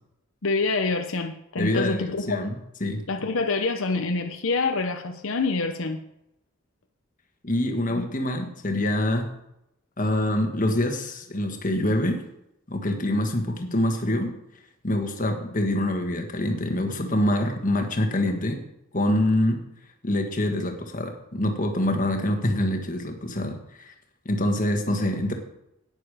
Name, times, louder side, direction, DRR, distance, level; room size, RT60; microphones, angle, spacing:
voice 1, 0.4-2.5 3.1-6.0 7.9-8.0, left 3 dB, 80° left, 5 dB, 0.9 m, -26 dB
voice 2, 1.6-3.0 7.4-9.3 10.0-12.2 12.7-14.3 14.8-18.6 18.9-19.6 20.0-23.9 24.2-25.3, left 1 dB, 40° left, 4 dB, 1.6 m, -25 dB
11.5 x 9.5 x 4.9 m, 0.84 s
head